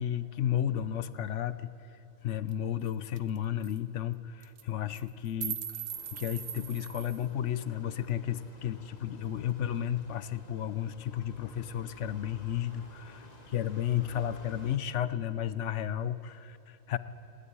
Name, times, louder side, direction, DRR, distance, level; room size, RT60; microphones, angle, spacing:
voice 1, 0.0-1.7 2.2-5.6 6.1-17.0, left 10 dB, 65° left, 14 dB, 1.0 m, -33 dB
sound 1, 2.5-2.6 2.9-3.0 3.2-3.4 3.6-3.8 4.4-4.6 4.9-7.3, right 9 dB, 85° right, 1.3 m, -39 dB
sound 2, 5.9-14.8, left 2 dB, 35° left, 1.4 m, -54 dB
21.0 x 17.0 x 9.7 m, 2.7 s
omnidirectional pair, 1.3 m